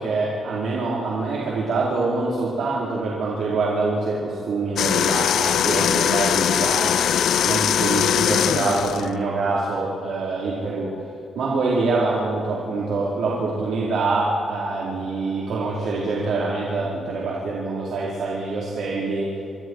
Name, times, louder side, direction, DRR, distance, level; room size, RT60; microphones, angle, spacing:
voice 1, 0.0-7.0 7.4-19.4, right 3 dB, 80° right, -5 dB, 4.5 m, -25 dB
sound 1, 4.8-9.1, left 9 dB, 80° left, 0.5 m, -21 dB
27.5 x 25.5 x 4.8 m, 2.7 s
wide cardioid pair, 145°, 0 cm